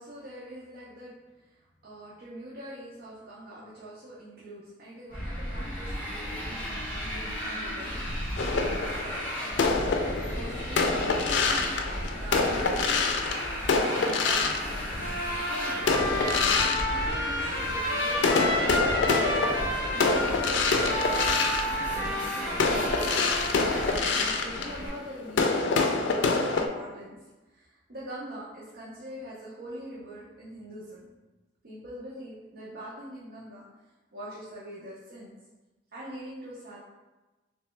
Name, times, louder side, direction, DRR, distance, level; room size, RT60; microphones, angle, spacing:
voice 1, 0.0-8.5 8.7-9.2 10.3-10.8 11.4-11.8 12.1-13.0 14.0-14.4 15.5-18.4 18.7-19.5 19.9-23.5 24.2-27.2 27.5-31.1 31.6-33.6 34.1-35.3 35.9-36.8, right 1 dB, 60° right, -7 dB, 0.7 m, -43 dB
Motorcycle, 5.1-24.9, equal, 10° left, 1.1 m, -35 dB
sound 1, 8.4-15.3 15.8-17.8 18.2-26.7, left 4 dB, 90° left, 0.4 m, -27 dB
Trumpet, 15.0-23.8, left 1 dB, 60° left, 0.8 m, -31 dB
3.2 x 3.0 x 3.1 m, 1.2 s
head